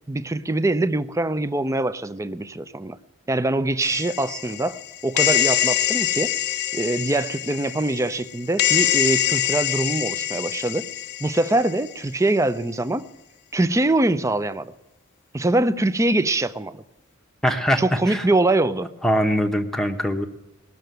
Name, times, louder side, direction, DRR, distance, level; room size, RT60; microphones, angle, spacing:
voice 1, 0.1-3.0 3.3-6.3 6.7-10.9 11.2-13.1 13.5-14.7 15.3-16.8 17.8-18.9, right 2 dB, 15° right, 14 dB, 0.5 m, -23 dB
sound 1, 3.8-11.9, left 12 dB, 50° left, 0.5 m, -24 dB
voice 2, 17.4-18.3 19.0-20.3, equal, ahead, 5 dB, 0.9 m, -22 dB
19.5 x 6.7 x 9.2 m, 0.94 s
head